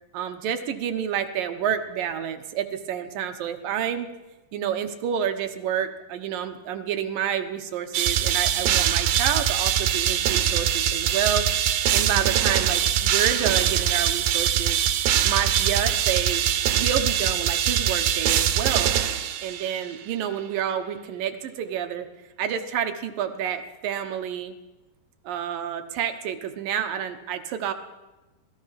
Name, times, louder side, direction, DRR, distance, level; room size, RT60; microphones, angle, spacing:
voice 1, 0.1-4.1 4.5-11.5 11.9-14.8 15.2-16.5 16.7-18.9 19.4-22.1 22.4-24.6 25.2-27.7, right 9 dB, 70° right, 7 dB, 2.7 m, -29 dB
sound 1, 7.9-19.8, right 10 dB, 85° right, 3.1 m, -23 dB
27.0 x 18.5 x 5.8 m, 1.1 s
omnidirectional pair, 4.6 m